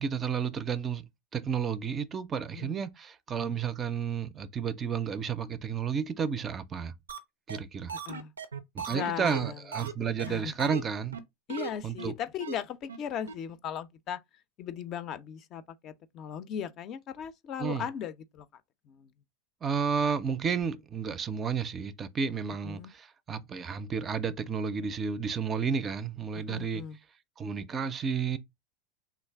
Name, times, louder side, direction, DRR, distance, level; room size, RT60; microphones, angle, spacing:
voice 1, 0.0-6.9 7.5-7.9 8.7-11.2 11.8-12.1 17.6-17.8 19.6-26.8 27.4-28.4, right 6 dB, 30° right, 0.4 m, -32 dB
voice 2, 2.4-2.8 7.9-8.3 8.9-9.6 10.2-10.6 11.5-14.2 14.6-19.1 22.6-22.9 26.3-27.0, left 8 dB, 45° left, 0.4 m, -38 dB
sound 1, 7.1-7.2 7.5-7.6 7.9-9.9 10.2-10.3 10.6-10.8 11.1-11.2 11.5-11.7 12.0-12.1 12.4-12.5 12.9-13.0 13.3-13.4, right 6 dB, 90° right, 0.4 m, -37 dB
3.1 x 2.4 x 3.3 m
hypercardioid pair, 90°, 0 cm